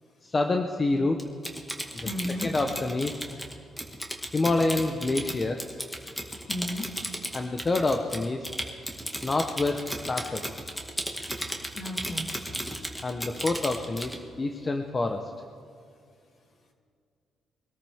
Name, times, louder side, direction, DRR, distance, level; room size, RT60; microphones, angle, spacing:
voice 1, 0.2-1.2 2.4-3.2 4.3-5.6 7.3-8.5 9.2-9.8 10.1-10.4 13.0-15.3, left 2 dB, 30° left, 4 dB, 0.9 m, -27 dB
Typing, 1.2-14.2, equal, 5° left, 1.9 m, -35 dB
voice 2, 2.0-2.5 6.5-6.9 11.7-12.3, left 1 dB, 50° left, 1 dB, 2.8 m, -33 dB
23.5 x 13.5 x 3.6 m, 2.3 s
cardioid pair, 90°, 0 cm